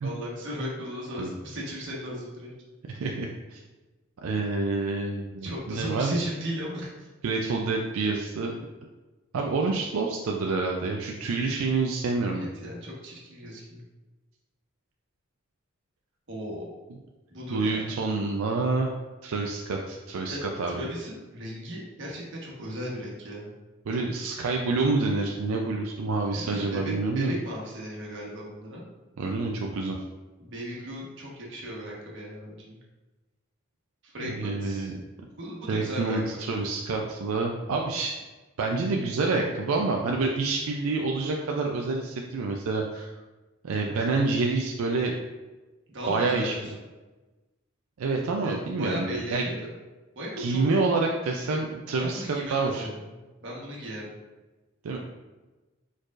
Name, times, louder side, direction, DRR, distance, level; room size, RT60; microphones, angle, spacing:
voice 1, 0.0-2.5 5.4-7.1 12.3-13.8 16.3-16.7 17.3-17.8 20.3-20.4 20.7-23.5 23.9-24.0 26.3-28.8 30.4-32.8 34.0-34.9 35.4-36.5 45.9-46.7 48.4-49.7 50.1-50.6 52.0-53.1 53.4-54.2, equal, 60° right, -3 dB, 1.2 m, -36 dB
voice 2, 2.9-3.6 4.2-6.2 7.2-8.5 9.3-12.5 17.5-18.9 19.2-20.9 23.9-27.3 29.2-30.0 34.2-34.9 35.7-38.2 38.6-43.1 43.6-45.1 46.1-46.7 48.0-49.5 50.4-52.2 52.5-52.9 54.8-55.0, right 3 dB, 90° right, 1 dB, 0.4 m, -27 dB
4.7 x 4.4 x 2.4 m, 1.2 s
head